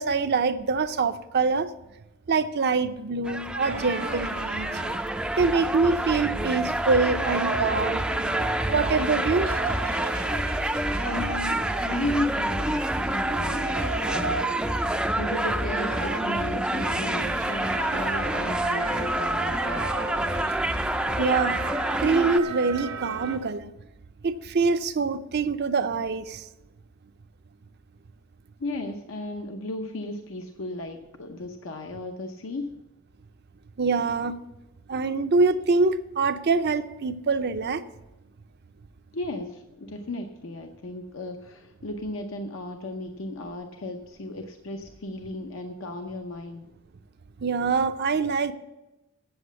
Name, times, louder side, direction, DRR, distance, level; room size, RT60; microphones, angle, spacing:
voice 1, 0.0-1.7 2.3-4.8 5.4-8.0 8.7-9.5 21.2-21.6 22.0-23.7 24.2-26.4 33.8-34.4 34.9-37.8 47.4-48.5, right 4 dB, 55° right, 0.6 m, -24 dB
sound 1, 3.2-22.4, right 1 dB, 5° right, 0.4 m, -27 dB
sound 2, 3.6-23.4, right 3 dB, 75° right, 1.2 m, -37 dB
voice 2, 11.1-19.9 28.6-32.7 39.1-46.7, left 2 dB, 70° left, 0.8 m, -35 dB
8.3 x 7.8 x 8.2 m
head